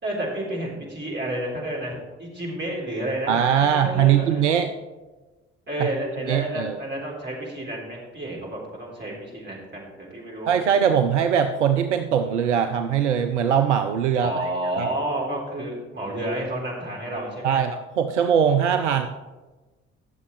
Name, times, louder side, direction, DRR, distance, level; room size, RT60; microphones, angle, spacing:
voice 1, 0.0-4.5 5.7-10.6 14.2-17.6, right 1 dB, 30° right, -3 dB, 3.9 m, -30 dB
voice 2, 3.3-4.7 5.8-5.9 6.3-6.8 10.5-14.3 14.8-14.9 17.4-19.1, right 8 dB, 80° right, 7 dB, 0.5 m, -21 dB
18.5 x 6.9 x 3.2 m, 1.2 s
figure-of-eight pair, 45°, 35 cm